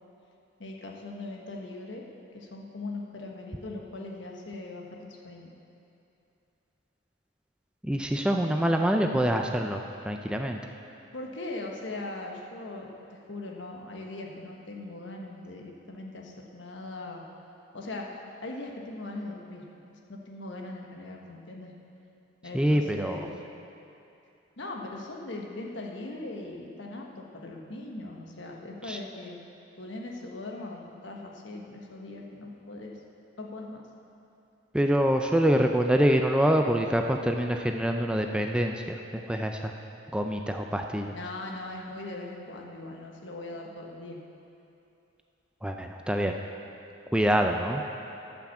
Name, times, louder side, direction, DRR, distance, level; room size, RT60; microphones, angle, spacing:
voice 1, 0.6-2.0 2.3-5.5 11.1-12.9 13.3-17.2 17.7-18.1 18.4-19.6 20.1-21.7 22.4-23.4 24.6-29.4 29.8-32.9 33.4-33.8 41.1-44.2, left 2 dB, 65° left, 0 dB, 1.3 m, -40 dB
voice 2, 7.8-10.6 22.5-23.2 28.9-29.0 34.7-39.7 40.1-41.1 45.6-46.3 47.1-47.8, equal, 5° right, 3 dB, 0.4 m, -25 dB
13.0 x 6.0 x 6.9 m, 2.8 s
head